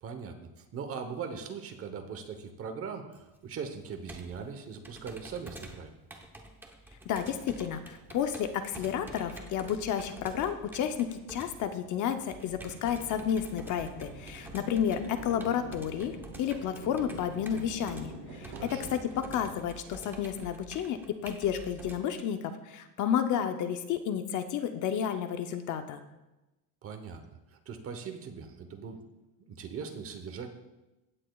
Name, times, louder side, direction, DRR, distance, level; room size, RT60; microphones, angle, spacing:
voice 1, 0.0-5.9 18.5-19.0 26.8-27.2 27.5-29.0 29.4-30.5, right 6 dB, 30° right, 7 dB, 1.0 m, -40 dB
Computer keyboard, 3.1-22.0, right 1 dB, 5° right, 0.8 m, -49 dB
voice 2, 7.1-26.0, left 9 dB, 45° left, 8 dB, 0.6 m, -31 dB
sound 1, 8.0-19.5, right 2 dB, 80° right, 3.6 m, -48 dB
16.0 x 8.8 x 2.3 m, 1.0 s
cardioid pair, 150°, 43 cm